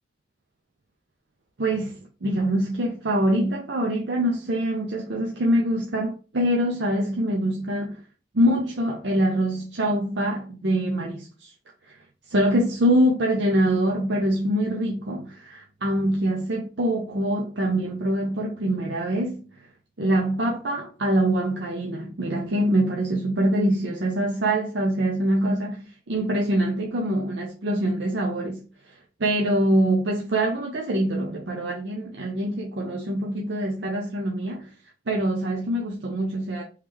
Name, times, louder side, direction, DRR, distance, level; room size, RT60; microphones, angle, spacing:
voice 1, 1.6-8.0 8.3-11.5 11.8-12.0 12.3-19.7 20.0-34.7 35.1-36.6, right 1 dB, 65° right, 0.6 m, -24 dB
3.2 x 3.1 x 3.5 m
head